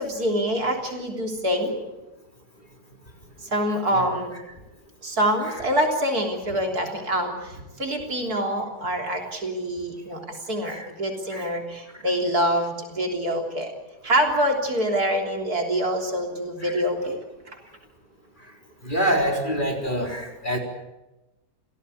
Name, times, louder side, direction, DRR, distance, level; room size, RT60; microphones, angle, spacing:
voice 1, 0.0-1.8 3.4-4.3 5.0-13.7 14.0-17.2, equal, 55° right, 2 dB, 3.9 m, -25 dB
voice 2, 18.8-20.6, equal, 25° left, 1 dB, 4.0 m, -26 dB
28.5 x 17.0 x 8.7 m, 1.0 s
omnidirectional pair, 1.9 m